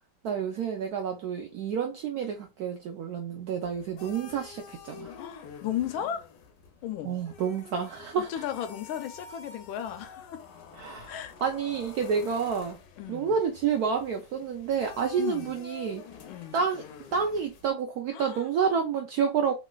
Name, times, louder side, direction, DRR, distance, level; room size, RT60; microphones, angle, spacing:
voice 1, 0.2-5.1 7.0-8.4 10.8-12.8 13.1-16.1 16.5-16.8 17.1-19.5, right 6 dB, 80° right, 0.8 m, -29 dB
sound 1, 3.6-17.7, left 5 dB, 70° left, 1.2 m, -48 dB
voice 2, 5.2-6.3 6.8-7.2 8.3-10.4 11.1-11.3 13.0-13.4 15.2-15.5 16.2-16.6 18.1-18.4, left 10 dB, 85° left, 1.4 m, -35 dB
3.0 x 3.0 x 2.2 m
omnidirectional pair, 2.1 m